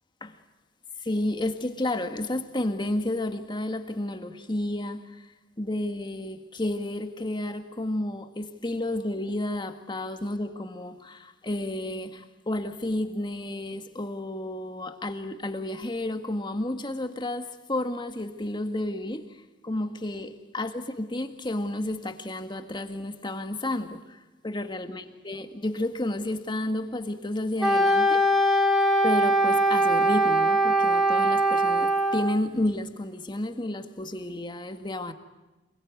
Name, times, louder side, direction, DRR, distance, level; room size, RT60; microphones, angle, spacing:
voice 1, 1.0-5.3 5.6-28.6 29.0-35.1, left 1 dB, 25° left, 1.9 m, -31 dB
Wind instrument woodwind instrument, 27.6-32.4, right 1 dB, ahead, 2.1 m, -22 dB
28.0 x 22.0 x 9.6 m
head